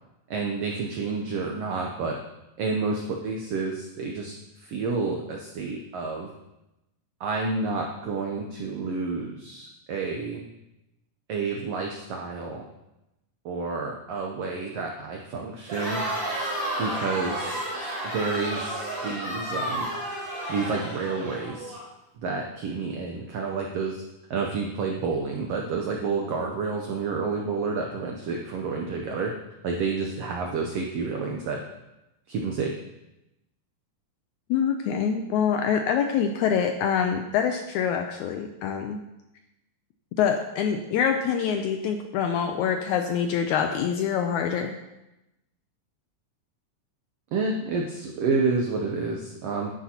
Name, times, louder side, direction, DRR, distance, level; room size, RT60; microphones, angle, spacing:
voice 1, 0.3-2.2 2.6-6.3 7.2-10.4 11.3-12.6 13.4-16.0 16.8-17.6 18.0-19.9 20.5-21.7 22.2-24.0 24.3-29.3 29.6-31.6 32.3-32.7 47.3-49.7, right 4 dB, 80° right, 1 dB, 1.4 m, -29 dB
Crowd, 15.6-21.8, right 1 dB, 45° right, 5.0 m, -31 dB
voice 2, 34.5-39.0 40.2-44.7, left 7 dB, 80° left, 5 dB, 1.7 m, -25 dB
11.0 x 9.7 x 2.9 m, 0.94 s
omnidirectional pair, 3.9 m